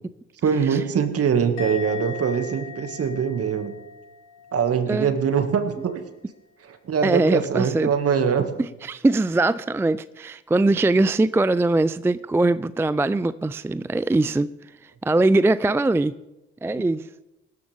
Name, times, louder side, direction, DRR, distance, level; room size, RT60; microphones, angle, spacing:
voice 1, 0.4-3.7 4.5-6.0 6.6-8.5, right 7 dB, 45° right, 7 dB, 2.2 m, -23 dB
Musical instrument, 1.6-5.0 5.2-5.7, left 5 dB, 65° left, 6.8 m, -39 dB
voice 2, 7.0-7.9 8.8-14.5 14.8-16.2 16.6-17.1, right 2 dB, 10° right, 17 dB, 0.4 m, -21 dB
23.5 x 13.0 x 3.6 m, 1.0 s
hypercardioid pair, 50°, 32 cm